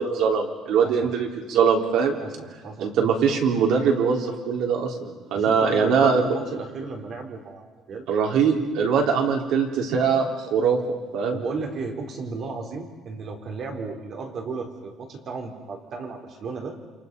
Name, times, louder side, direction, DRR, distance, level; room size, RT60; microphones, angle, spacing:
voice 1, 0.0-2.2 2.8-6.2 8.1-10.8 11.1-11.4, right 6 dB, 65° right, 1 dB, 3.9 m, -22 dB
voice 2, 0.8-1.1 2.2-3.0 5.3-8.0 11.3-16.7, right 4 dB, 40° right, 2 dB, 3.9 m, -34 dB
29.0 x 27.5 x 5.5 m, 1.4 s
cardioid pair, 170°, 0 cm